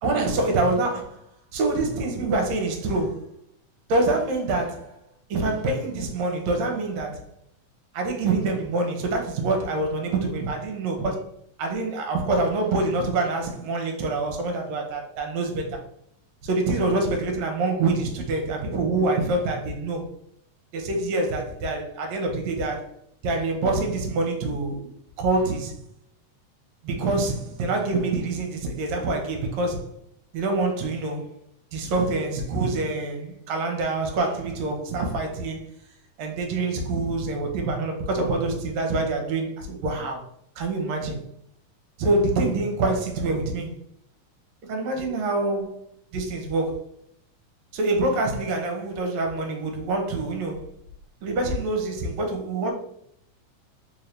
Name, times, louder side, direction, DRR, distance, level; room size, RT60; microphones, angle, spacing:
voice 1, 0.0-1.2 1.5-3.3 3.9-5.0 5.3-7.3 7.9-11.3 11.6-15.8 16.4-20.0 20.7-22.9 23.2-24.9 25.2-25.8 26.8-29.9 30.3-31.3 31.7-35.7 36.2-40.2 40.6-41.2 42.0-43.8 44.6-45.8 46.1-46.8 47.7-50.7 51.2-52.7, right 2 dB, 70° right, 1.9 m, -26 dB
4.7 x 2.7 x 3.2 m
omnidirectional pair, 3.5 m